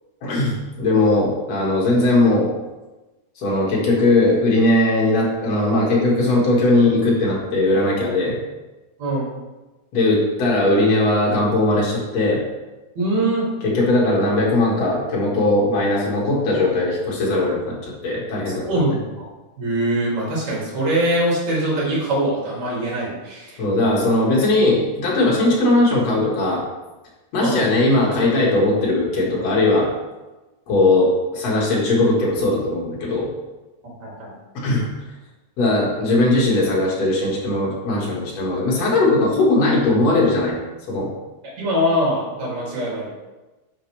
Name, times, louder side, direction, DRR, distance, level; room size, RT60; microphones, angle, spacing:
voice 1, 0.2-2.5 3.4-8.3 9.9-12.4 13.6-18.7 23.6-26.6 27.3-29.9 30.7-33.3 34.5-34.9 35.6-40.6 40.9-41.1, left 2 dB, 45° left, -4 dB, 2.7 m, -19 dB
voice 2, 9.0-9.3 13.0-13.5 18.6-19.3 19.6-23.6 27.4-27.6 34.0-34.3 41.6-43.1, right 1 dB, 45° right, -5 dB, 3.7 m, -22 dB
10.0 x 6.8 x 3.4 m, 1.1 s
omnidirectional pair, 4.7 m